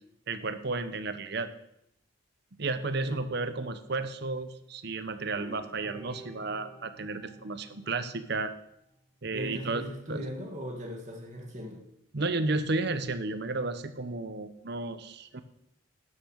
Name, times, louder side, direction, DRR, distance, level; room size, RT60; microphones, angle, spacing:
voice 1, 0.3-1.5 2.6-8.5 9.2-10.2 12.1-15.4, right 3 dB, 55° right, 11 dB, 0.9 m, -33 dB
sound 1, 5.3-8.8, right 2 dB, ahead, 1.5 m, -50 dB
voice 2, 9.3-11.8, equal, 35° right, 0 dB, 1.9 m, -38 dB
12.0 x 6.8 x 6.4 m, 0.77 s
head